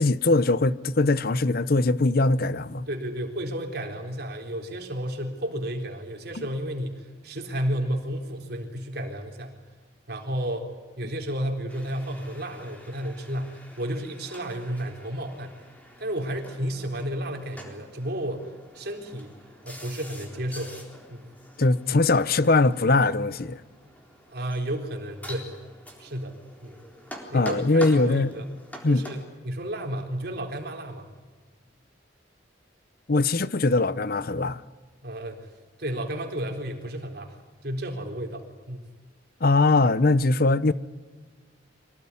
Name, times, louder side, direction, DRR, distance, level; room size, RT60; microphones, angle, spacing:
voice 1, 0.0-2.9 21.6-23.6 27.3-28.3 28.8-29.0 33.1-34.6 39.4-40.7, left 2 dB, 50° left, 0.8 m, -21 dB
voice 2, 2.9-9.5 10.1-10.7 11.0-15.6 16.0-18.5 18.7-19.3 19.6-20.8 21.1-21.3 24.3-25.6 26.0-26.8 27.3-28.5 28.9-31.1 35.0-35.5 35.8-38.8, right 1 dB, 55° right, 3.9 m, -32 dB
sound 1, 11.7-29.3, equal, 10° left, 3.8 m, -46 dB
25.0 x 18.0 x 9.9 m
head